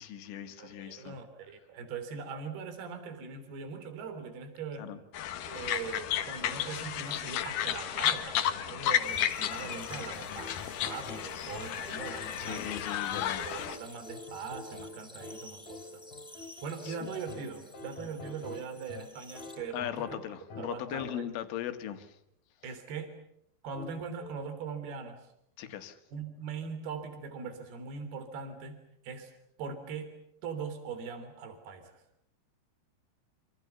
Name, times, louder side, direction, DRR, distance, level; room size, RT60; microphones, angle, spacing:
voice 1, 0.0-1.2 4.8-5.0 12.4-13.4 16.8-17.0 19.7-22.1 25.6-26.0, left 11 dB, 80° left, 9 dB, 4.3 m, -38 dB
voice 2, 0.6-4.9 5.5-12.8 13.4-16.1 16.4-20.2 20.6-21.3 22.6-23.1 23.6-25.2 26.1-28.8 29.0-29.3 29.6-30.1 30.4-32.0, right 5 dB, 55° right, 10 dB, 5.1 m, -41 dB
sound 1, 5.1-13.8, left 10 dB, 65° left, 2.3 m, -33 dB
sound 2, 9.0-19.6, left 1 dB, ahead, 3.9 m, -53 dB
sound 3, 9.9-21.5 23.7-24.6, left 3 dB, 50° left, 4.1 m, -47 dB
27.0 x 27.0 x 6.9 m, 0.75 s
omnidirectional pair, 5.6 m